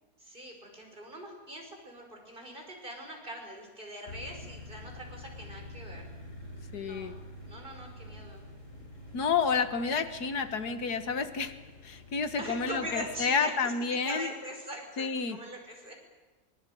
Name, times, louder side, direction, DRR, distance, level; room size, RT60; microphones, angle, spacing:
voice 1, 0.2-6.1 6.8-7.1 7.4-8.4 12.4-13.7 14.0-15.9, right 1 dB, 35° right, 2 dB, 5.6 m, -42 dB
sound 1, 4.1-13.3, left 1 dB, 50° left, 4.5 m, -47 dB
voice 2, 6.7-7.2 9.1-11.5 11.8-14.3 15.0-15.4, left 5 dB, 90° left, 9 dB, 2.1 m, -30 dB
24.0 x 22.5 x 9.2 m, 1.2 s
omnidirectional pair, 1.6 m